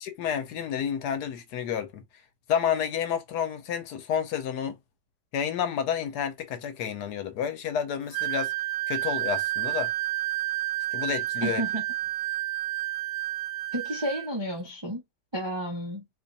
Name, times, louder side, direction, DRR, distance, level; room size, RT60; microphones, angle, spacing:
voice 1, 0.0-2.0 2.5-4.8 5.3-8.5 8.9-9.9 10.9-11.6, left 8 dB, 70° left, 1.2 m, -30 dB
Wind instrument woodwind instrument, 8.1-14.3, right 16 dB, 70° right, 1.0 m, -30 dB
voice 2, 11.4-11.8 13.7-15.0 15.3-16.0, equal, 35° right, 0.4 m, -31 dB
2.9 x 2.5 x 4.0 m
omnidirectional pair, 1.9 m